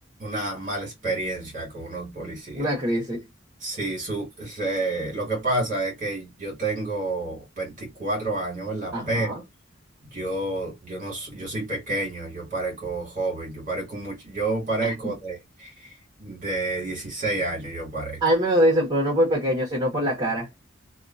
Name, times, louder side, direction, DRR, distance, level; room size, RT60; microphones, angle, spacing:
voice 1, 0.2-2.7 3.6-9.3 10.1-15.9 16.2-18.2, right 2 dB, 40° right, 1.7 m, -29 dB
voice 2, 2.5-3.2 8.9-9.4 14.8-14.9 18.2-20.5, equal, 25° right, 1.3 m, -23 dB
2.8 x 2.4 x 2.5 m
head